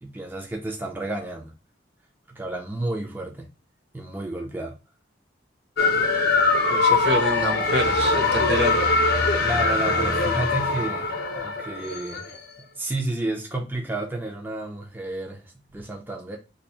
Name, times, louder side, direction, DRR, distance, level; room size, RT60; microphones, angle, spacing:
voice 1, 0.0-1.5 2.3-3.5 3.9-4.8 6.9-7.0 9.4-12.3 12.8-16.4, right 2 dB, 10° right, 0.4 m, -31 dB
sound 1, 5.8-12.4, left 3 dB, 55° left, 0.7 m, -22 dB
voice 2, 6.7-8.8, equal, 60° right, 0.9 m, -26 dB
2.7 x 2.5 x 4.2 m
head